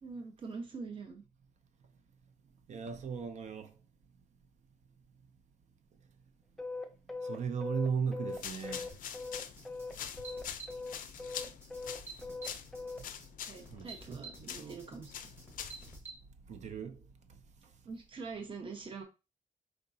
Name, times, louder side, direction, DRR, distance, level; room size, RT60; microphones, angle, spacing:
voice 1, 0.0-1.2 11.2-11.6 13.5-15.4 17.8-19.0, right 4 dB, 35° right, 1.0 m, -44 dB
voice 2, 2.7-3.7 7.2-8.9 13.7-14.8 16.5-17.0, right 6 dB, 55° right, 0.5 m, -37 dB
sound 1, 6.6-9.9 10.2-13.0, left 3 dB, 5° left, 0.5 m, -40 dB
sound 2, 8.3-16.0, left 9 dB, 70° left, 0.4 m, -45 dB
sound 3, 8.9-16.2, right 3 dB, 15° right, 1.2 m, -51 dB
4.7 x 3.8 x 2.7 m
wide cardioid pair, 170°, 14 cm